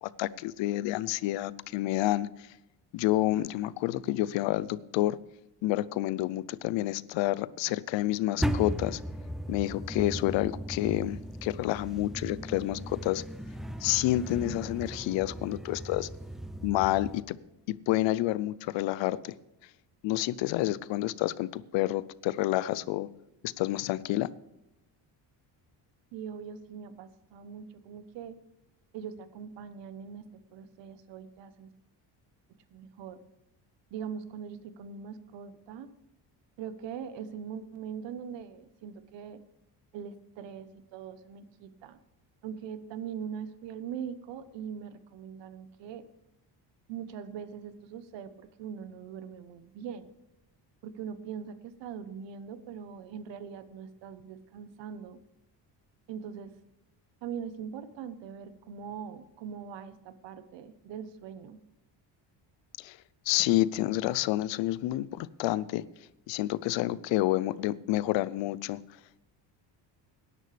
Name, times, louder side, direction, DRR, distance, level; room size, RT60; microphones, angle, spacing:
voice 1, 0.0-2.5 2.9-5.2 5.6-9.0 9.5-13.2 13.8-16.1 16.6-17.4 17.7-19.3 20.0-23.1 23.4-24.3 62.8-63.0 63.3-65.8 66.3-68.8, left 16 dB, 85° left, 19 dB, 0.6 m, -29 dB
sound 1, 8.4-17.2, equal, ahead, 0.5 m, -37 dB
voice 2, 26.1-28.4 28.9-30.2 30.5-31.7 32.7-33.2 33.9-35.9 36.6-39.4 39.9-42.0 42.4-46.0 46.9-50.1 50.8-55.2 56.1-56.5 57.2-61.6, right 7 dB, 80° right, 13 dB, 1.1 m, -41 dB
18.5 x 10.5 x 3.4 m, 0.91 s
cardioid pair, 150°, 43 cm